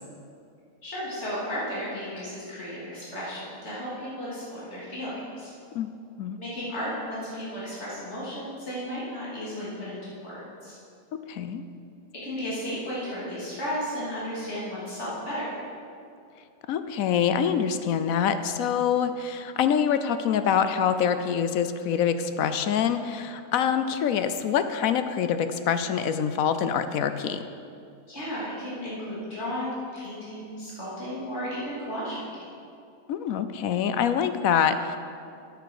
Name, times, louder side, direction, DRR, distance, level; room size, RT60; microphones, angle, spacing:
voice 1, 0.8-5.5 6.4-10.8 12.2-15.5 28.1-32.4, equal, 50° left, -9 dB, 3.5 m, -34 dB
voice 2, 11.3-11.6 16.7-27.4 33.1-35.0, left 8 dB, 75° left, 10 dB, 1.0 m, -25 dB
9.4 x 9.2 x 6.5 m, 2.5 s
omnidirectional pair, 1.5 m